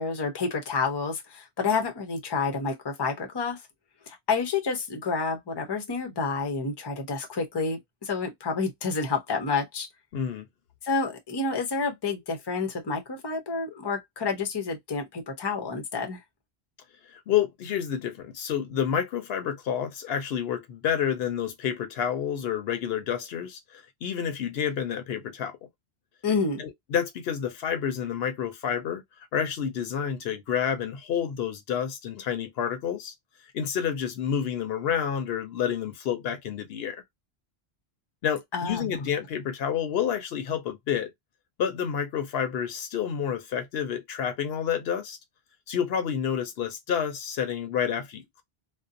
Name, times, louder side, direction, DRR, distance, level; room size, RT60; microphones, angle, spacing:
voice 1, 0.0-3.6 4.1-9.9 10.8-16.2 26.2-26.6 38.5-38.9, left 4 dB, 30° left, 0.5 m, -29 dB
voice 2, 10.1-10.5 17.3-25.6 26.6-29.0 29.3-33.1 33.5-37.0 38.2-41.1 41.6-45.2 45.7-48.4, left 8 dB, 75° left, 0.8 m, -29 dB
2.6 x 2.1 x 2.4 m
omnidirectional pair, 1.0 m